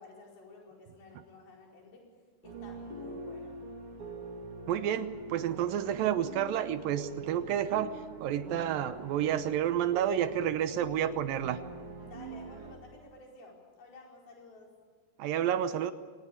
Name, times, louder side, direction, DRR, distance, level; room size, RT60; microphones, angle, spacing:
voice 1, 0.0-2.1 2.4-3.6 12.0-14.7, left 3 dB, 65° left, -1 dB, 6.7 m, -52 dB
sound 1, 2.4-12.7, right 2 dB, 35° right, 3.5 m, -44 dB
voice 2, 4.7-7.9 8.2-11.6 15.2-15.9, right 10 dB, 70° right, 11 dB, 2.4 m, -30 dB
25.0 x 19.0 x 8.6 m, 1.5 s
omnidirectional pair, 4.7 m